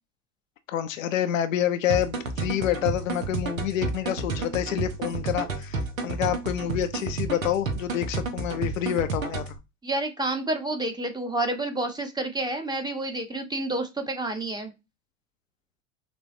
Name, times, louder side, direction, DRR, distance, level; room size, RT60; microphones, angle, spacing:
voice 1, 0.7-9.5, left 11 dB, 75° left, 0.6 m, -28 dB
sound 1, 1.9-9.6, right 3 dB, 85° right, 0.9 m, -31 dB
voice 2, 9.8-14.7, right 2 dB, 10° right, 0.9 m, -29 dB
6.2 x 2.2 x 2.7 m
figure-of-eight pair, 75°, 40 cm